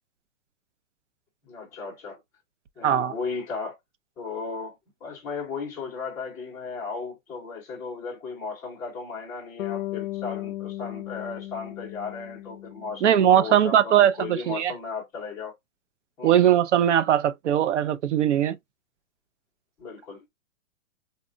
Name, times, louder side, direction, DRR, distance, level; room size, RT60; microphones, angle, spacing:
voice 1, 1.4-2.2 2.8-3.8 4.2-4.8 5.0-15.5 16.2-16.5 19.8-20.3, left 4 dB, 5° left, 0.7 m, -35 dB
voice 2, 2.8-3.1 13.0-14.7 16.2-18.6, right 10 dB, 60° right, 0.5 m, -20 dB
Bass guitar, 9.6-13.7, left 16 dB, 75° left, 0.5 m, -36 dB
4.1 x 2.1 x 2.5 m
hypercardioid pair, 170°, 40 cm